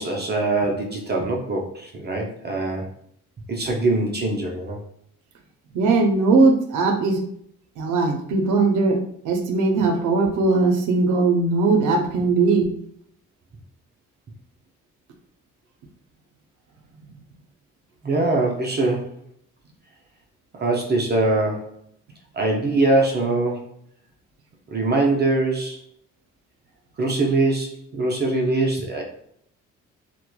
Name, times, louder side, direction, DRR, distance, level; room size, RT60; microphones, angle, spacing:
voice 1, 0.0-2.9 3.5-4.8 18.0-19.1 20.5-21.7 22.3-23.6 24.7-25.8 27.0-29.0, right 2 dB, 35° right, 0 dB, 0.6 m, -22 dB
voice 2, 5.7-7.2 7.8-9.0 9.2-12.7, right 3 dB, 85° right, 3 dB, 0.6 m, -19 dB
2.9 x 2.2 x 2.3 m, 0.69 s
cardioid pair, 90°, 30 cm